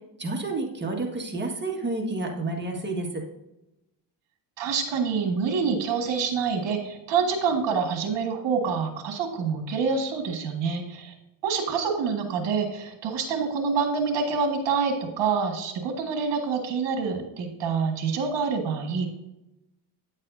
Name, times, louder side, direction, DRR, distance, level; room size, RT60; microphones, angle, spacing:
voice 1, 0.2-3.2, right 2 dB, 25° right, 1 dB, 1.7 m, -30 dB
voice 2, 4.6-11.1 11.4-19.1, right 5 dB, 65° right, 4 dB, 1.7 m, -26 dB
9.5 x 7.4 x 2.7 m, 0.92 s
cardioid pair, 95°, 46 cm